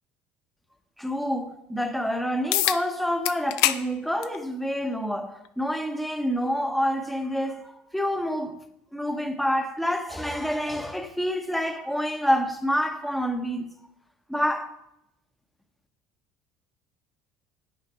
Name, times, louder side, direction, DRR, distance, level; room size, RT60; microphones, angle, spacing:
voice 1, 1.0-8.6 8.9-13.7 14.3-14.7, equal, ahead, 0.9 m, -27 dB
sound 1, 2.5-2.8 3.2-3.8 4.2-4.4 5.4-5.5 10.5-10.6, left 14 dB, 80° left, 0.6 m, -24 dB
10.5 x 8.9 x 4.2 m
cardioid pair, 150°, 5 cm